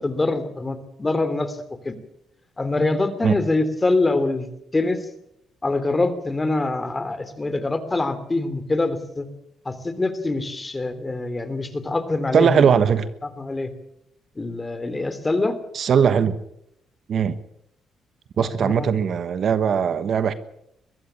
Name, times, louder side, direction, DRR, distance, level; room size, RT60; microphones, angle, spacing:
voice 1, 0.0-1.6 1.8-1.9 2.6-4.5 4.7-5.0 5.6-9.3 9.6-12.7 13.4-13.7 14.3-15.5 18.4-18.9, left 2 dB, 20° left, 12 dB, 3.0 m, -24 dB
voice 2, 12.3-13.1 15.7-16.4 17.1-17.3 18.4-20.3, right 7 dB, 55° right, 13 dB, 1.2 m, -19 dB
22.0 x 14.5 x 8.7 m, 0.79 s
cardioid pair, 90°, 0 cm